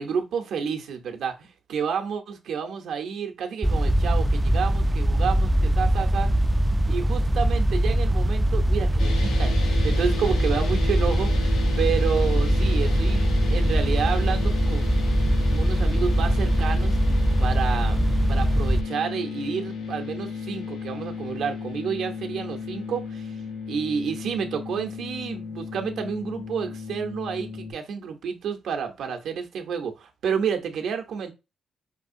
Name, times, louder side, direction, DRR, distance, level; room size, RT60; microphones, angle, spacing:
voice 1, 0.0-6.3 6.9-14.8 15.5-17.0 17.4-23.4 23.7-31.3, right 6 dB, 75° right, 0.8 m, -30 dB
sound 1, 3.6-18.8, right 1 dB, 15° right, 0.3 m, -22 dB
sound 2, 9.0-27.7, left 5 dB, 85° left, 0.9 m, -35 dB
5.3 x 2.4 x 2.6 m
supercardioid pair, 50°, 0 cm